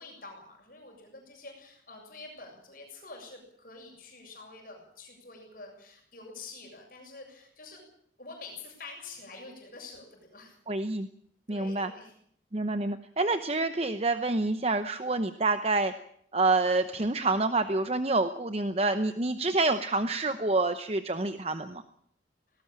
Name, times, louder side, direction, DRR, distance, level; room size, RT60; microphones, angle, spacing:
voice 1, 0.0-7.8 8.2-10.6 11.5-12.1, left 3 dB, 50° left, 1 dB, 7.2 m, -47 dB
voice 2, 10.7-11.1 11.5-11.9 12.5-15.9 16.3-21.8, right 3 dB, 35° right, 10 dB, 0.8 m, -27 dB
19.0 x 17.5 x 8.8 m, 0.66 s
head